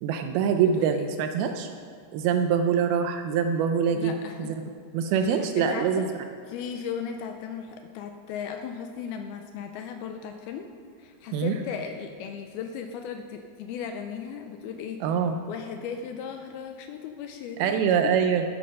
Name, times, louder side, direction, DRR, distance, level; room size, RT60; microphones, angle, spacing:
voice 1, 0.0-1.7 2.1-4.1 4.4-4.6 4.9-6.1 11.3-11.6 15.0-15.4 17.6-18.4, right 7 dB, 80° right, 6 dB, 2.3 m, -24 dB
voice 2, 0.6-1.1 3.9-4.5 5.2-6.1 6.5-10.7 11.0-15.0 15.5-18.1, left 7 dB, 85° left, 6 dB, 2.3 m, -36 dB
12.5 x 10.0 x 5.3 m, 2.2 s
omnidirectional pair, 4.8 m